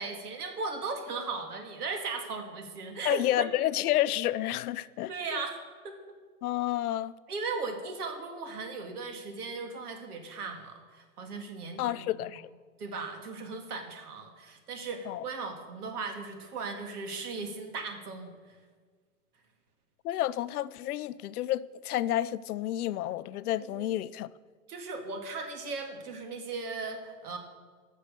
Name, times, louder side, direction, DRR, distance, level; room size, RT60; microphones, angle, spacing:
voice 1, 0.0-3.5 5.1-5.6 5.8-6.0 7.3-11.9 12.8-18.6 23.6-23.9 24.7-27.4, right 4 dB, 80° right, 2.1 m, -37 dB
voice 2, 3.0-5.4 6.4-7.1 11.8-12.4 15.1-15.2 20.0-24.3, left 13 dB, 75° left, 0.6 m, -30 dB
11.5 x 6.5 x 6.8 m
supercardioid pair, 180°, 45 cm